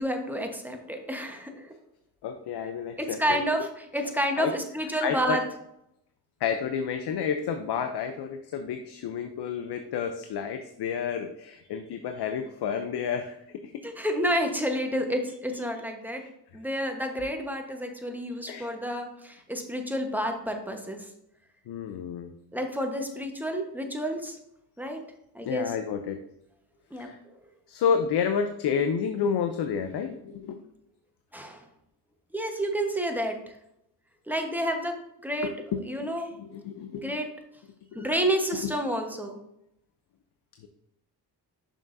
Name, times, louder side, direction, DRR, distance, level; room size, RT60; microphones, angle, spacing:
voice 1, 0.0-1.7 3.0-5.4 13.8-16.2 16.5-21.1 22.5-24.4 24.8-25.0 25.3-25.7 26.9-27.3 31.3-31.6 32.3-33.4 34.3-35.0 35.2-35.5 35.9-36.3 37.0-37.3 37.9-39.4, equal, 5° right, 3 dB, 1.1 m, -30 dB
voice 2, 2.2-3.4 4.4-4.5 5.0-5.4 6.4-13.4 13.6-13.7 16.2-16.3 18.5-18.7 21.7-22.3 25.4-26.2 27.0-27.2 27.7-30.6 35.4-35.8 36.4-37.1 37.9-38.1 38.6-38.7, left 7 dB, 75° left, 7 dB, 0.6 m, -30 dB
6.6 x 6.2 x 2.6 m, 0.79 s
cardioid pair, 80°, 40 cm